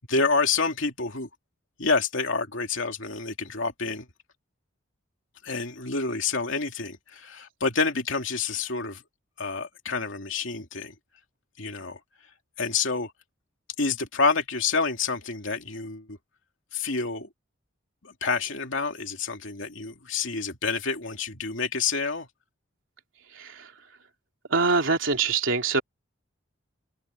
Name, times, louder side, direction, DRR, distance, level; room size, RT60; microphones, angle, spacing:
voice 1, 0.1-1.3 1.8-4.1 5.4-9.0 9.4-10.9 11.6-12.0 12.6-13.1 13.8-16.2 16.7-17.3 18.0-22.3, left 4 dB, 70° left, 2.6 m, -28 dB
voice 2, 23.3-23.7 24.5-25.8, right 4 dB, 75° right, 2.9 m, -24 dB
open air
head